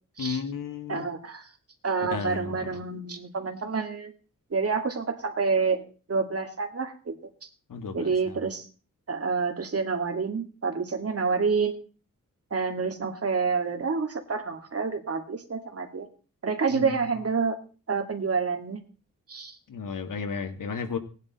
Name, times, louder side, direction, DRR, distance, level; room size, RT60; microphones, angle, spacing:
voice 1, 0.2-1.1 2.1-2.6 7.7-8.1 16.7-16.9 19.7-21.0, left 6 dB, 75° left, 7 dB, 2.0 m, -33 dB
voice 2, 0.9-1.4 1.8-4.1 4.5-5.8 6.1-7.1 7.9-8.6 9.1-11.8 12.5-16.1 16.4-17.6 17.9-18.8 19.3-19.5, right 5 dB, 45° right, 5 dB, 2.2 m, -28 dB
18.5 x 10.5 x 4.2 m, 0.37 s
wide cardioid pair, 120°, 32 cm